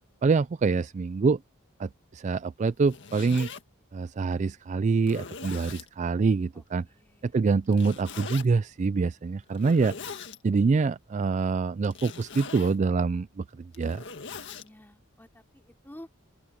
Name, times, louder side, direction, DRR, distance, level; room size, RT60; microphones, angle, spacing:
voice 1, 0.2-1.4 1.8-3.5 3.9-6.8 7.2-10.0 10.4-14.0, right 4 dB, 35° right, 0.3 m, -25 dB
Zipper (clothing), 2.7-3.6 4.3-4.4 5.0-5.9 7.7-8.5 9.5-10.4 11.8-12.8 13.6-14.7, left 5 dB, 60° left, 1.8 m, -41 dB
voice 2, 6.5-7.3 14.3-16.1, left 1 dB, 10° left, 3.0 m, -51 dB
open air
head